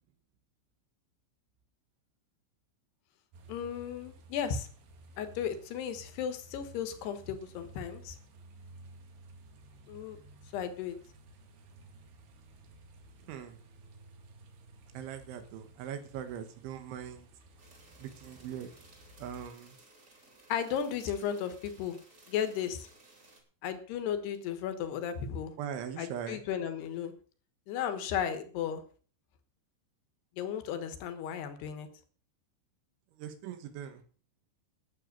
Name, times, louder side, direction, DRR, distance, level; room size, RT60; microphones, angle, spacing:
sound 1, 3.3-19.5, right 1 dB, 65° right, 3.6 m, -55 dB
voice 1, 3.5-4.7 5.2-8.2 9.9-10.2 10.5-10.9 20.5-22.0 22.3-22.9 23.6-25.5 26.0-27.1 27.7-28.8 30.4-31.9, left 8 dB, 70° left, 9 dB, 3.2 m, -35 dB
voice 2, 13.3-13.6 14.9-17.3 18.0-18.7 19.2-19.8 25.6-26.4 33.2-34.0, right 9 dB, 80° right, 8 dB, 3.7 m, -41 dB
sound 2, 17.6-23.4, right 2 dB, 20° right, 2.6 m, -59 dB
12.0 x 8.1 x 6.7 m, 0.41 s
omnidirectional pair, 5.4 m